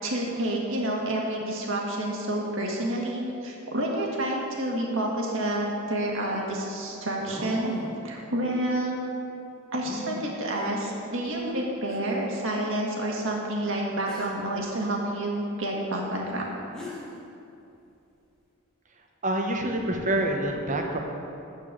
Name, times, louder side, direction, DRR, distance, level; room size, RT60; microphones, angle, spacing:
voice 1, 0.0-7.7 8.0-9.0 9.7-16.5, right 1 dB, 60° right, -1 dB, 1.7 m, -29 dB
sound 1, 5.7-5.8 7.2-8.1 9.8-10.3 11.2-11.3 11.9-12.0 14.1-14.4 16.4-16.5 16.7-17.2, equal, 5° left, 1.4 m, -38 dB
voice 2, 19.2-21.0, right 1 dB, 35° right, 2 dB, 1.0 m, -26 dB
13.0 x 4.6 x 7.5 m, 2.7 s
head